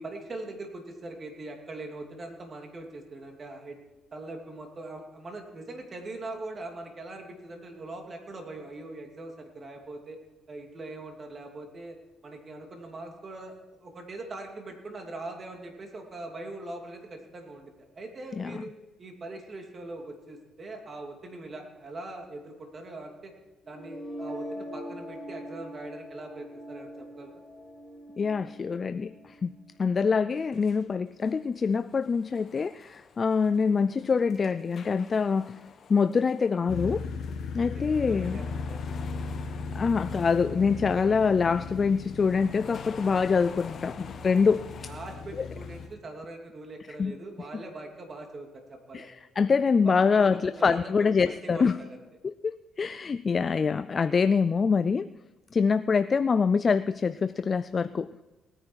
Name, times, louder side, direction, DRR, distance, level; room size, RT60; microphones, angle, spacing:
voice 1, 0.0-3.8 4.1-10.2 10.5-12.0 12.2-23.3 23.7-27.3 37.7-39.1 44.8-49.1 49.8-52.0, right 2 dB, 40° right, 3 dB, 2.8 m, -42 dB
sound 1, 23.6-29.6, equal, ahead, 5.1 m, -42 dB
voice 2, 28.2-29.5 29.8-35.6 35.9-37.0 37.5-38.4 39.7-44.7 47.0-47.1 48.9-51.8 52.2-55.1 55.5-58.1, left 5 dB, 40° left, 13 dB, 0.4 m, -25 dB
sound 2, 30.3-30.9 31.2-37.5 37.8-41.2 42.0-45.9, left 6 dB, 55° left, 1.0 m, -50 dB
sound 3, 36.7-45.9, left 4 dB, 70° left, 1.8 m, -37 dB
18.5 x 9.9 x 4.7 m, 1.1 s
cardioid pair, 90°, 0 cm